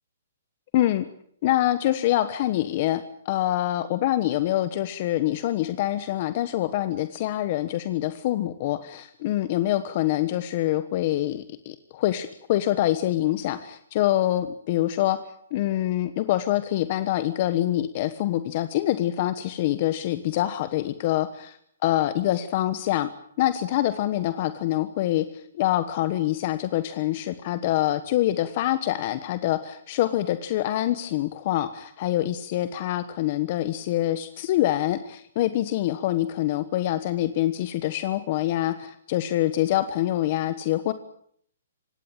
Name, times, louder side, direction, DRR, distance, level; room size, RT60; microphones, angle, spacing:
voice 1, 0.7-1.0 1.4-15.2 15.5-23.1 23.4-40.9, left 14 dB, 35° left, 12 dB, 1.2 m, -25 dB
25.0 x 19.0 x 9.0 m, 0.65 s
hypercardioid pair, 165°, 0 cm